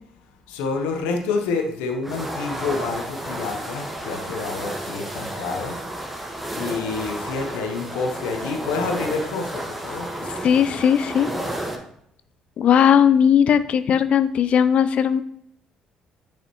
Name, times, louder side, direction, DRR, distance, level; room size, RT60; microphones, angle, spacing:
voice 1, 0.5-5.8 6.2-10.1, left 4 dB, 85° left, 4 dB, 0.8 m, -28 dB
sound 1, 2.0-11.8, right 1 dB, 5° right, 1.2 m, -32 dB
voice 2, 10.4-11.3 12.6-15.2, left 8 dB, 60° left, 13 dB, 0.4 m, -17 dB
6.5 x 4.9 x 2.9 m, 0.73 s
hypercardioid pair, 60°, 2 cm